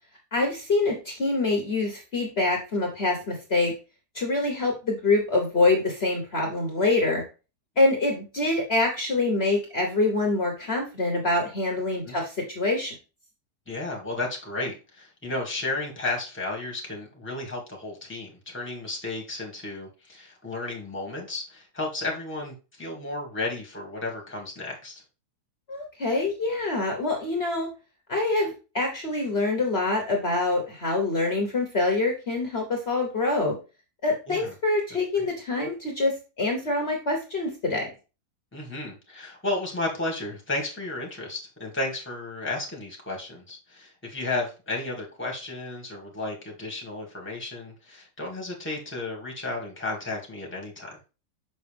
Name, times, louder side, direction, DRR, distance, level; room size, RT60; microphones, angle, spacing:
voice 1, 0.3-3.7 4.1-7.2 7.8-12.9 25.7-27.7 28.1-33.5 34.0-37.9, left 2 dB, 45° left, 1 dB, 1.3 m, -25 dB
voice 2, 13.7-25.0 34.3-34.5 35.2-35.3 38.5-51.0, left 2 dB, 10° left, 0 dB, 1.6 m, -33 dB
6.1 x 5.5 x 3.4 m, 0.31 s
omnidirectional pair, 1.6 m